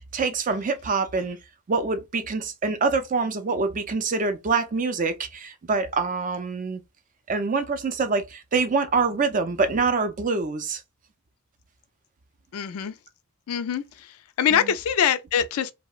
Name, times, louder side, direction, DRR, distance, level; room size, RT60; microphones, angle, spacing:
voice 1, 0.1-1.4 1.7-6.8 7.3-10.8 14.5-14.7, right 4 dB, 35° right, 0.4 m, -25 dB
voice 2, 12.5-12.9 13.5-13.8 14.4-15.7, left 8 dB, 70° left, 0.3 m, -23 dB
2.8 x 2.1 x 2.3 m
head